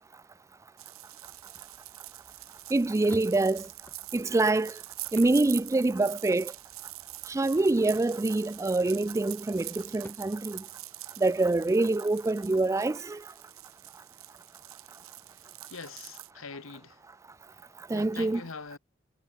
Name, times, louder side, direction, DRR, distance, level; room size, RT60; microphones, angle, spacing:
sound 1, 0.8-16.3, right 18 dB, 75° right, 1.0 m, -45 dB
sound 2, 1.2-10.1, equal, 10° left, 2.4 m, -55 dB
voice 1, 2.7-3.7 4.1-4.8 5.1-6.5 7.3-10.6 11.2-13.2 17.9-18.4, right 2 dB, 15° right, 0.3 m, -25 dB
voice 2, 15.7-17.0 17.5-18.8, left 4 dB, 70° left, 1.3 m, -44 dB
head